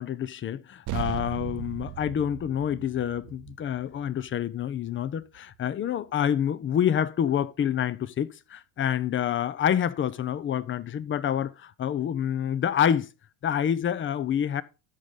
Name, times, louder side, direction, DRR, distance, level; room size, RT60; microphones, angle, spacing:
voice 1, 0.0-13.1 13.4-14.6, left 9 dB, 25° left, 0.6 m, -27 dB
sound 1, 0.9-5.7, right 15 dB, 40° right, 0.6 m, -38 dB
13.0 x 5.2 x 3.7 m
hypercardioid pair, 85°, 48 cm